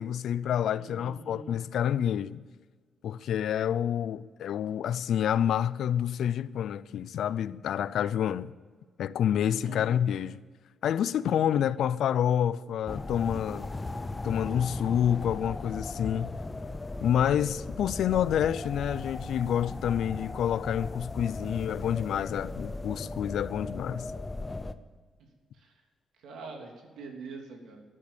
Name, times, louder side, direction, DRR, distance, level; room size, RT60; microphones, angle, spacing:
voice 1, 0.0-2.4 3.0-8.5 9.0-10.4 10.8-13.7 14.2-16.3 17.0-24.1, left 9 dB, 65° left, 0.5 m, -28 dB
voice 2, 0.8-1.5 9.4-9.9 11.3-11.6 25.6-25.7 26.2-27.8, right 4 dB, 80° right, 3.1 m, -44 dB
sound 1, 12.9-24.7, left 2 dB, 15° left, 0.6 m, -37 dB
13.5 x 11.0 x 7.1 m
cardioid pair, 180°, 0 cm